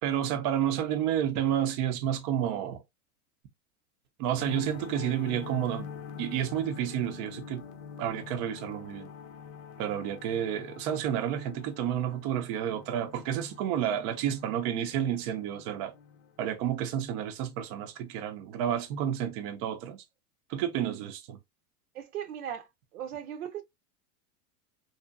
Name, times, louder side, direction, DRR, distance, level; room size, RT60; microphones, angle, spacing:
voice 1, 0.0-2.8 4.2-5.9 6.2-7.6 8.0-9.1 9.8-16.0 16.4-20.0 20.5-21.4, right 10 dB, 40° right, 0.6 m, -30 dB
sound 1, 4.4-17.1, left 6 dB, 50° left, 0.6 m, -45 dB
voice 2, 21.9-23.6, right 9 dB, 75° right, 0.8 m, -38 dB
2.7 x 2.4 x 2.3 m
hypercardioid pair, 105°, 44 cm